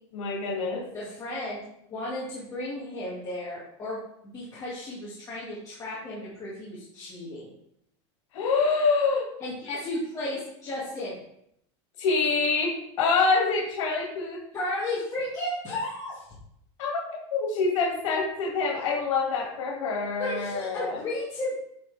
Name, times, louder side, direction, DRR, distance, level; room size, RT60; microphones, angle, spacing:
voice 1, 0.1-0.9 8.3-9.3 12.0-14.4 16.8-17.0 17.3-21.0, left 4 dB, 80° left, -2 dB, 2.0 m, -26 dB
voice 2, 0.9-1.6 1.9-4.0 4.3-7.5 9.4-11.2 14.5-16.3 20.2-21.7, left 1 dB, 20° left, -8 dB, 1.7 m, -34 dB
8.3 x 4.3 x 3.3 m, 0.75 s
supercardioid pair, 155°, 16 cm